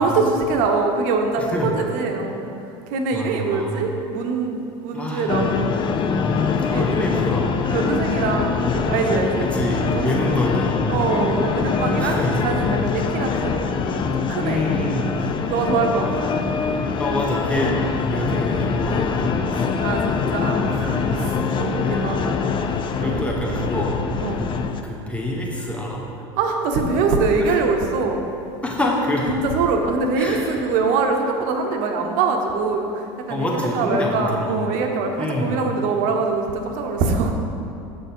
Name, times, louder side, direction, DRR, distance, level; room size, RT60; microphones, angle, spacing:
voice 1, 0.0-2.4 2.9-5.8 6.7-6.9 7.7-9.5 9.8-10.4 10.9-13.7 14.1-14.7 15.5-16.4 19.8-23.8 24.2-24.4 26.4-28.3 29.3-37.3, right 4 dB, 65° right, 3 dB, 1.0 m, -24 dB
voice 2, 1.4-1.7 3.1-3.8 4.9-5.3 6.7-7.5 9.4-10.9 12.0-12.4 14.4-15.2 16.0-16.3 17.0-17.8 18.0-19.7 21.1-21.2 21.8-22.1 23.0-23.9 24.8-26.0 27.4-27.5 28.6-29.3 30.2-30.5 33.3-34.6 35.2-35.5, left 1 dB, 10° left, -2 dB, 1.4 m, -26 dB
sound 1, 5.3-24.8, left 5 dB, 35° left, 0.5 m, -23 dB
6.5 x 6.5 x 4.5 m, 2.6 s
supercardioid pair, 100°, 15 cm